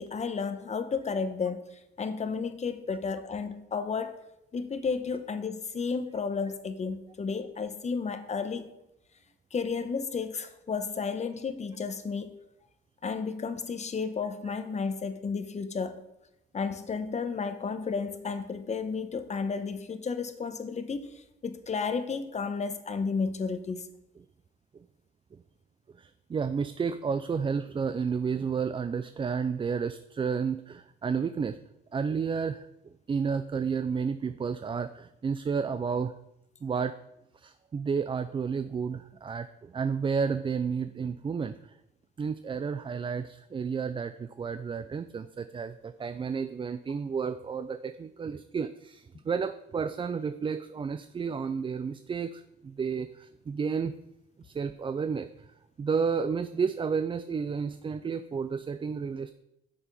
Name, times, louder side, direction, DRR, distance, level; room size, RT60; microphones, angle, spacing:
voice 1, 0.0-1.6 2.0-4.1 4.5-8.7 9.5-12.4 13.0-16.0 16.5-23.9, left 5 dB, 35° left, 9 dB, 0.9 m, -32 dB
voice 2, 26.0-31.6 31.9-32.6 33.1-36.1 36.6-37.0 37.4-41.7 42.2-53.9 54.4-55.3 55.8-59.3, right 6 dB, 25° right, 12 dB, 0.4 m, -31 dB
6.9 x 5.9 x 5.4 m, 0.85 s
cardioid pair, 90°, 20 cm